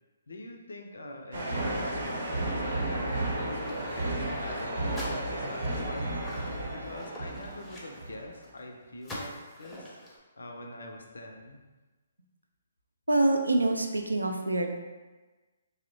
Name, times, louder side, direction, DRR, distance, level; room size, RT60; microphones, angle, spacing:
voice 1, 0.3-6.3 6.7-10.0 10.4-11.6, left 1 dB, 70° left, 3 dB, 0.4 m, -44 dB
sound 1, 1.3-8.4, right 1 dB, 60° right, 0.7 m, -33 dB
sound 2, 3.0-4.0 4.4-4.5 4.9-8.6 9.0-10.2, left 1 dB, 10° left, 0.5 m, -45 dB
voice 2, 13.1-14.7, right 2 dB, 90° right, 3 dB, 0.3 m, -25 dB
2.8 x 2.0 x 2.6 m, 1.2 s
figure-of-eight pair, 135°, 0 cm